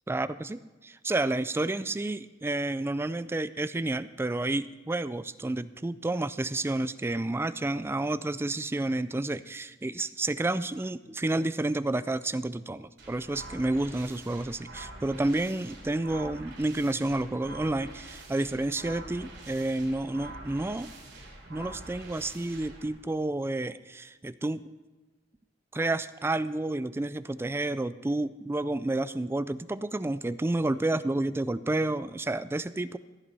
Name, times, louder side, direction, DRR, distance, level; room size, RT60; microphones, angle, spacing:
voice 1, 0.1-20.9 21.5-24.7 25.7-33.0, right 2 dB, 15° right, 15 dB, 0.3 m, -30 dB
sound 1, 13.0-22.9, right 2 dB, 70° right, 3.3 m, -46 dB
15.5 x 11.0 x 4.1 m, 1.2 s
head